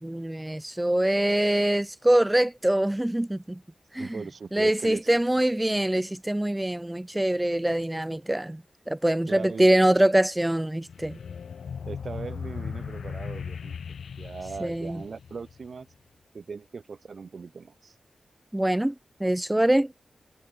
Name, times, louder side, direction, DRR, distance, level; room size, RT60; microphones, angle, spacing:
voice 1, 0.0-3.6 3.9-4.2 4.5-11.2 14.6-15.0 18.5-18.9 19.2-19.9, right 1 dB, 10° right, 0.8 m, -24 dB
voice 2, 4.0-5.2 9.3-9.7 11.9-13.8 14.2-15.9 16.3-17.9, right 5 dB, 60° right, 7.8 m, -39 dB
sound 1, 10.9-15.8, left 6 dB, 85° left, 2.5 m, -38 dB
wide cardioid pair, 100°, 0 cm